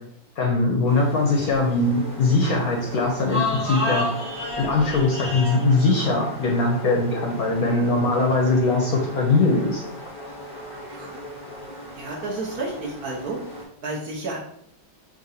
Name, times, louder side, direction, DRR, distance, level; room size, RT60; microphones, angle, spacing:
voice 1, 0.4-4.1 4.6-9.8, left 3 dB, 65° left, -1 dB, 1.0 m, -21 dB
sound 1, 0.9-13.6, left 2 dB, 10° right, 0.3 m, -34 dB
voice 2, 10.9-11.2 11.9-13.4 13.8-14.4, right 2 dB, 65° right, -2 dB, 1.0 m, -31 dB
5.6 x 2.5 x 2.7 m, 0.71 s
omnidirectional pair, 2.1 m